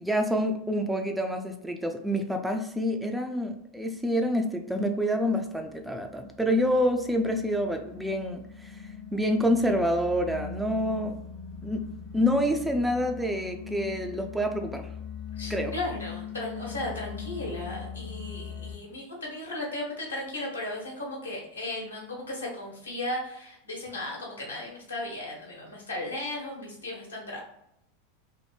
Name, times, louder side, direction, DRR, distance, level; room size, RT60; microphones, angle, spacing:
voice 1, 0.0-8.8 9.1-11.2 11.6-11.9 12.1-14.9 15.5-15.7, equal, 5° right, 4 dB, 0.3 m, -27 dB
sound 1, 5.6-18.8, left 7 dB, 40° left, 0.8 m, -41 dB
voice 2, 15.4-27.4, left 1 dB, 75° left, -3 dB, 1.1 m, -36 dB
2.7 x 2.7 x 3.2 m, 0.78 s
figure-of-eight pair, 85°, 0 cm